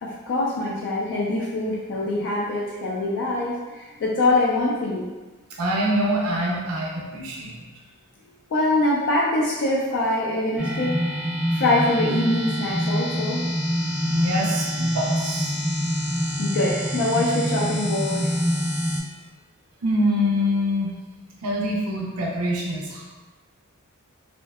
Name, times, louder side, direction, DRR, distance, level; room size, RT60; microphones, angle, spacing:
voice 1, 0.0-5.1 8.5-11.2 11.5-13.4 16.4-18.4, left 2 dB, 55° left, -5 dB, 0.4 m, -24 dB
voice 2, 5.6-7.6 13.7-15.6 19.8-20.9 21.4-23.0, equal, 85° right, -2 dB, 0.5 m, -25 dB
sound 1, 10.6-19.0, equal, 5° right, 0.6 m, -25 dB
2.6 x 2.1 x 2.2 m, 1.2 s
head